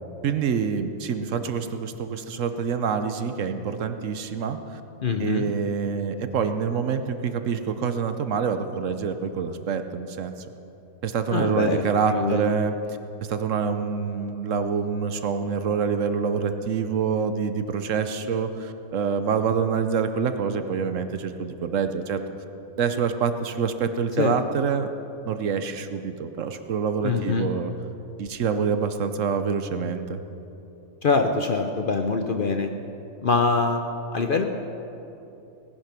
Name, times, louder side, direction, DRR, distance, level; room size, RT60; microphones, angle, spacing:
voice 1, 0.2-4.8 5.2-10.4 11.0-12.7 13.3-22.2 22.8-24.9 25.3-27.7 28.2-30.2, right 6 dB, 65° right, 9 dB, 1.1 m, -26 dB
voice 2, 5.0-5.5 11.3-11.8 12.1-12.5 24.2-24.4 27.0-27.5 31.0-32.7 33.2-33.8 34.1-34.4, left 4 dB, 50° left, 5 dB, 0.7 m, -24 dB
18.0 x 11.0 x 5.9 m, 3.0 s
omnidirectional pair, 1.5 m